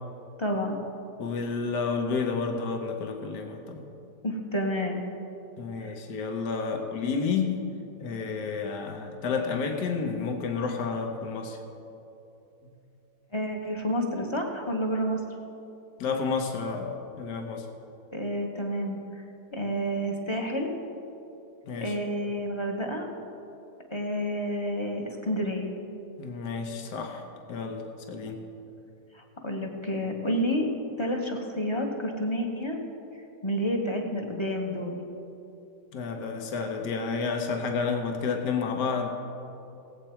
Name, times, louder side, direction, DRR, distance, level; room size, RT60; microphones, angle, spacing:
voice 1, 0.4-0.8 4.2-5.0 5.8-6.0 13.3-15.2 18.1-19.0 19.5-20.7 21.8-23.1 23.9-25.7 29.1-30.7 31.0-32.8 33.4-35.0, equal, 20° left, 1 dB, 0.9 m, -29 dB
voice 2, 1.2-3.9 5.6-7.6 8.0-11.6 16.0-17.7 21.7-22.0 26.2-28.5 35.9-39.1, left 5 dB, 75° left, 3 dB, 1.6 m, -30 dB
18.0 x 8.2 x 4.4 m, 2.8 s
omnidirectional pair, 1.9 m